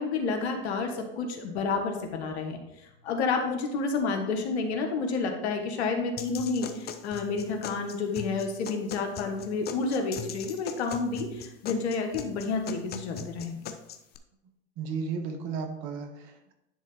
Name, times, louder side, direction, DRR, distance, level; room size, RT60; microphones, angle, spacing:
voice 1, 0.0-2.6 3.0-13.6, left 4 dB, 75° left, 4 dB, 1.4 m, -30 dB
sound 1, 6.2-14.2, left 7 dB, 30° left, 0.6 m, -41 dB
voice 2, 14.8-16.5, right 5 dB, 55° right, 6 dB, 1.4 m, -34 dB
10.0 x 3.7 x 4.2 m, 0.88 s
hypercardioid pair, 100°, 33 cm